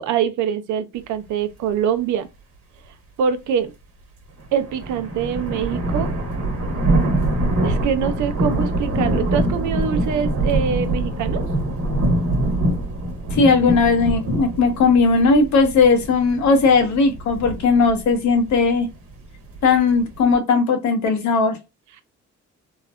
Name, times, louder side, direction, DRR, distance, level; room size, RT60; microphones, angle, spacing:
voice 1, 0.0-2.3 3.2-3.7 4.5-6.2 7.6-11.4, right 8 dB, 75° right, 0.6 m, -24 dB
sound 1, 4.4-20.3, right 1 dB, 50° right, 1.1 m, -24 dB
voice 2, 13.3-18.9 19.6-21.6, left 4 dB, 70° left, 0.9 m, -17 dB
3.1 x 2.1 x 2.3 m
cardioid pair, 90°, 30 cm